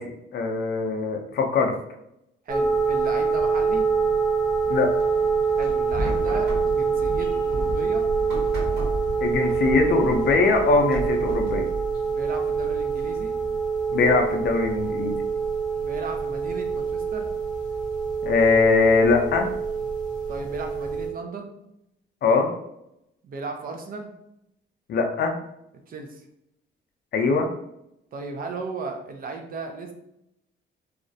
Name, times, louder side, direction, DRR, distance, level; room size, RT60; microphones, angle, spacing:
voice 1, 0.0-1.7 4.7-4.9 9.2-11.7 13.9-15.1 18.2-19.5 22.2-22.5 24.9-25.4 27.1-27.5, left 4 dB, 55° left, 3 dB, 0.5 m, -21 dB
sound 1, 2.5-21.1, right 5 dB, 20° right, 1.0 m, -25 dB
voice 2, 2.5-3.9 5.6-8.1 12.0-13.3 15.7-17.3 20.3-21.5 23.2-24.1 25.9-26.3 28.1-29.9, right 3 dB, 45° right, 4 dB, 0.5 m, -35 dB
sound 2, 5.0-11.4, equal, 20° left, 0.8 m, -35 dB
sound 3, 6.0-13.5, right 2 dB, 60° right, 1.2 m, -38 dB
2.4 x 2.0 x 2.6 m, 0.81 s
cardioid pair, 90°, 20 cm